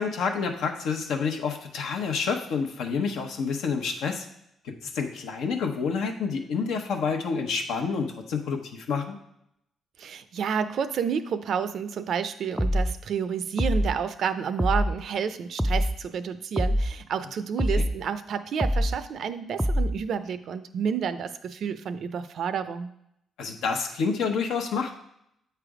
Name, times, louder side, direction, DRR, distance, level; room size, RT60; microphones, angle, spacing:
voice 1, 0.0-4.2 4.8-9.2 17.7-17.8 23.4-24.9, left 5 dB, 80° left, 4 dB, 0.9 m, -28 dB
voice 2, 10.0-22.9, right 7 dB, 65° right, 11 dB, 0.5 m, -30 dB
sound 1, 12.6-13.0 13.6-14.0 14.6-15.0 15.6-16.0 16.6-17.0 17.6-18.0 18.6-19.0 19.6-20.0, equal, ahead, 0.3 m, -24 dB
8.1 x 3.4 x 4.9 m, 0.76 s
cardioid pair, 90°, 0 cm